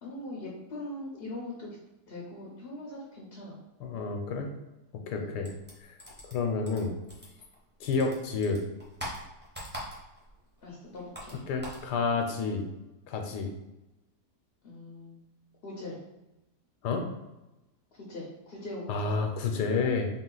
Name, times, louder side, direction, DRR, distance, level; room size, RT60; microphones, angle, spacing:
voice 1, 0.0-1.8 2.1-3.6 5.1-5.4 10.6-11.4 14.6-15.2 15.6-16.0 17.9-19.3, left 1 dB, 55° left, -3 dB, 0.7 m, -41 dB
voice 2, 3.8-4.5 5.1-5.5 6.2-6.9 7.8-8.6 11.5-12.6 13.1-13.5 16.8-17.1 18.9-20.1, left 4 dB, 80° left, 3 dB, 1.2 m, -29 dB
sound 1, 5.4-7.6 7.8-10.3 10.6-11.9, equal, 10° right, 0.6 m, -42 dB
3.8 x 2.4 x 3.8 m, 0.97 s
omnidirectional pair, 1.8 m